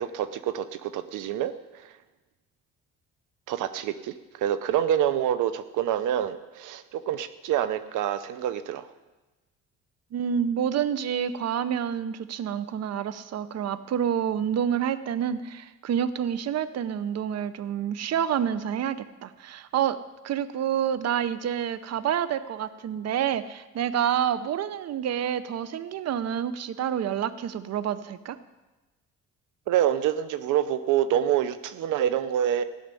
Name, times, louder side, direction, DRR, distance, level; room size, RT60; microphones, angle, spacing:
voice 1, 0.0-1.5 3.5-8.9 29.7-32.6, right 10 dB, 90° right, 13 dB, 0.8 m, -26 dB
voice 2, 10.1-20.0 20.2-28.4, right 9 dB, 55° right, 14 dB, 0.7 m, -28 dB
15.5 x 6.5 x 9.7 m, 1.1 s
cardioid pair, 90°, 30 cm